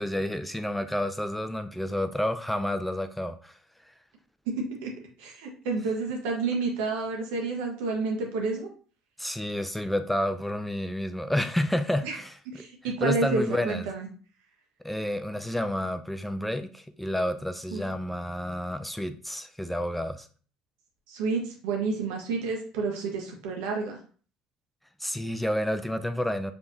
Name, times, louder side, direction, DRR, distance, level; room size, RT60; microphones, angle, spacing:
voice 1, 0.0-3.5 9.2-12.4 12.8-13.9 14.8-20.3 25.0-26.5, left 1 dB, 5° left, 9 dB, 0.5 m, -30 dB
voice 2, 4.6-4.9 5.2-8.7 12.0-12.2 12.5-14.1 17.7-17.8 21.1-24.0, right 3 dB, 80° right, 1 dB, 1.4 m, -30 dB
5.1 x 3.5 x 2.8 m, 0.41 s
supercardioid pair, 75°, 2 cm